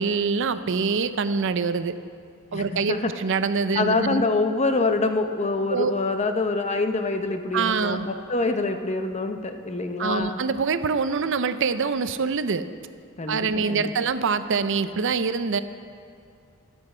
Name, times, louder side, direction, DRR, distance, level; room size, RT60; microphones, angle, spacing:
voice 1, 0.0-1.9 2.5-4.2 5.7-5.9 7.5-8.1 10.0-12.7 13.3-15.6, right 5 dB, 60° right, 12 dB, 0.6 m, -25 dB
voice 2, 2.5-3.1 3.7-10.4 13.2-13.9, left 3 dB, 30° left, 7 dB, 0.7 m, -25 dB
22.5 x 8.0 x 4.4 m, 2.5 s
head